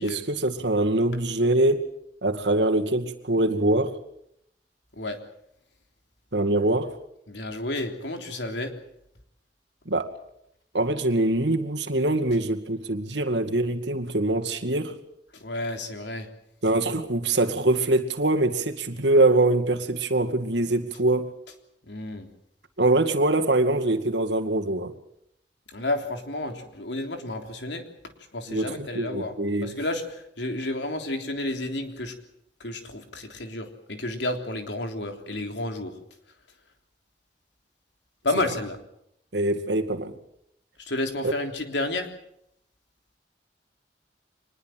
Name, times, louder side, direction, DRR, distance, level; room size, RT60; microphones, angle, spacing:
voice 1, 0.0-1.8 2.2-4.0 6.3-6.9 9.9-10.1 10.7-15.0 16.6-21.3 22.8-24.9 28.5-29.7 39.3-40.1 41.2-41.3, right 2 dB, 80° right, 2.3 m, -23 dB
voice 2, 7.3-8.7 15.3-16.3 21.9-22.3 25.7-27.8 28.3-32.1 32.6-36.0 38.2-38.8 40.8-42.1, left 2 dB, 85° left, 3.5 m, -31 dB
25.0 x 20.5 x 7.6 m
head